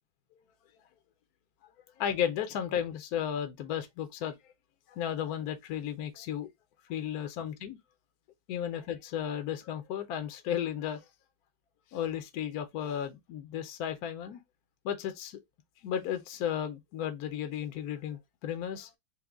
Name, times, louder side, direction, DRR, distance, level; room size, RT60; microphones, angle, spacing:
voice 1, 2.0-4.3 4.9-6.5 6.9-7.8 8.5-11.0 11.9-14.4 14.8-15.4 15.8-18.9, left 9 dB, 70° left, 0.9 m, -34 dB
4.6 x 2.1 x 3.5 m
omnidirectional pair, 2.1 m